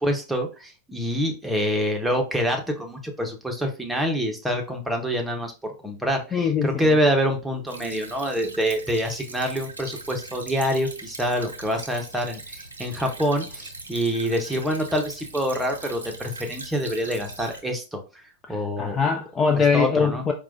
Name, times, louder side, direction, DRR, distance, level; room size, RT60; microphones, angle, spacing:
voice 1, 0.0-18.2 18.5-19.0 19.7-20.2, equal, 5° right, 0.8 m, -26 dB
voice 2, 6.3-7.0 18.5-20.3, left 5 dB, 20° left, 0.4 m, -23 dB
Stream / Trickle dribble, 7.7-17.6, right 2 dB, 80° right, 0.6 m, -40 dB
4.6 x 2.2 x 2.6 m
figure-of-eight pair, 90°, 0 cm